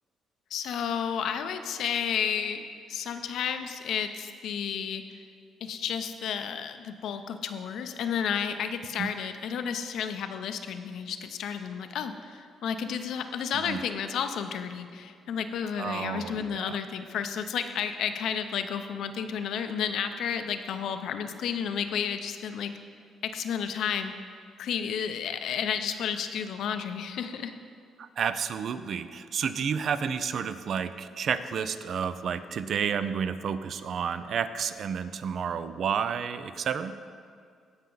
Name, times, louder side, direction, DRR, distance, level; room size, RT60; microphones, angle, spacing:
voice 1, 0.5-2.6 2.9-5.2 5.6-22.7 23.2-24.1 24.6-27.5, left 7 dB, 75° left, 8 dB, 0.6 m, -32 dB
voice 2, 15.8-16.8 28.0-36.9, right 7 dB, 60° right, 12 dB, 0.4 m, -31 dB
16.5 x 5.6 x 3.9 m, 2.3 s
cardioid pair, 90°, 0 cm